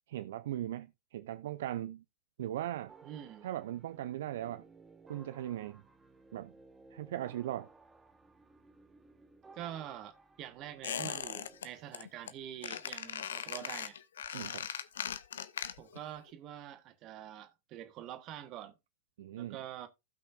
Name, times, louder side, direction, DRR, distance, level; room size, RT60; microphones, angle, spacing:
voice 1, 0.1-2.0 2.4-2.9 3.4-4.7 5.1-5.8 6.3-6.5 6.9-7.7 14.3-14.6 19.2-19.6, right 13 dB, 55° right, 0.4 m, -38 dB
sound 1, 2.9-11.6, right 3 dB, 15° right, 1.1 m, -59 dB
voice 2, 3.0-3.5 9.5-14.0 15.8-18.8 19.4-19.9, right 11 dB, 35° right, 1.2 m, -46 dB
Squeak, 10.8-11.7 11.9-12.3 12.6-16.0 16.3-16.4, left 8 dB, 65° left, 0.7 m, -39 dB
16.0 x 5.6 x 2.5 m
figure-of-eight pair, 90°, 0 cm